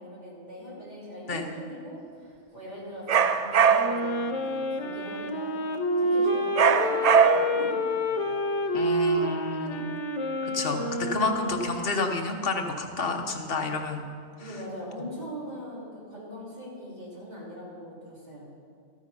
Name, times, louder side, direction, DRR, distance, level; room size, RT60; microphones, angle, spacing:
voice 1, 0.0-5.5 6.0-8.4 14.4-18.5, equal, 35° right, -7 dB, 3.5 m, -41 dB
sound 1, 3.1-4.1 6.6-7.7, right 7 dB, 80° right, 0.3 m, -21 dB
Wind instrument woodwind instrument, 3.7-12.1, equal, 85° left, 1.2 m, -28 dB
voice 2, 8.7-9.9 10.4-14.0, left 3 dB, 55° left, 3 dB, 1.2 m, -30 dB
13.5 x 9.0 x 5.5 m, 2.2 s
omnidirectional pair, 1.2 m